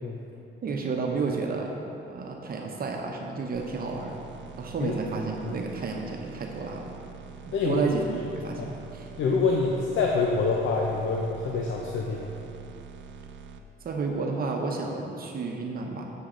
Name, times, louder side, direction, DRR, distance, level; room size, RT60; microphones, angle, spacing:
voice 1, 0.6-1.7 2.1-4.2 4.6-6.9 7.4-8.0 8.3-9.1 13.8-16.1, right 4 dB, 50° right, 1 dB, 0.9 m, -31 dB
sound 1, 3.5-13.6, right 6 dB, 70° right, 0.6 m, -45 dB
voice 2, 7.5-7.9 8.6-8.7 9.2-12.3, left 4 dB, 80° left, -1 dB, 0.7 m, -26 dB
7.8 x 7.3 x 3.8 m, 2.8 s
cardioid pair, 90°, 20 cm